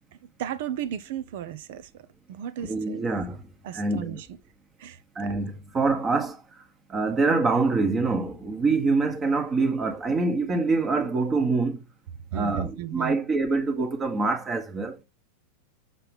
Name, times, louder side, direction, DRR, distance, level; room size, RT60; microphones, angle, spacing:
voice 1, 0.4-1.9 2.3-3.0 3.6-4.2 4.8-5.3 12.3-13.1, right 10 dB, 55° right, 0.8 m, -34 dB
voice 2, 2.6-3.4 3.7-4.2 5.1-6.4 6.9-11.8 12.3-15.0, right 3 dB, 25° right, 1.5 m, -25 dB
6.7 x 5.9 x 3.5 m
figure-of-eight pair, 90°, 0 cm